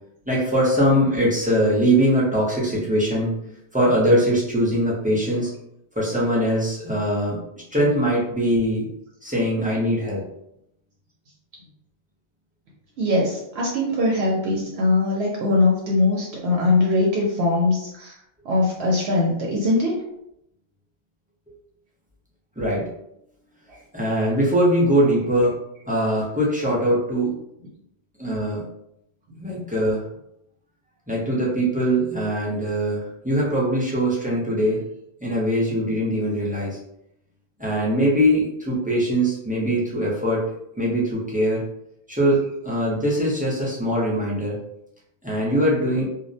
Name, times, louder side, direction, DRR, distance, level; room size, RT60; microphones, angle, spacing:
voice 1, 0.3-3.3 3.7-5.5 6.0-7.4 7.7-8.9 9.2-10.2 22.6-22.9 23.9-25.6 25.9-27.3 28.2-28.6 29.4-30.0 31.1-34.8 35.2-36.8 37.6-40.4 40.8-41.6 42.1-44.6 45.2-46.1, equal, 10° right, -6 dB, 0.5 m, -21 dB
voice 2, 13.0-18.2 18.4-19.9 23.7-23.8, left 2 dB, 75° right, -3 dB, 0.8 m, -21 dB
2.4 x 2.0 x 2.6 m, 0.80 s
omnidirectional pair, 1.1 m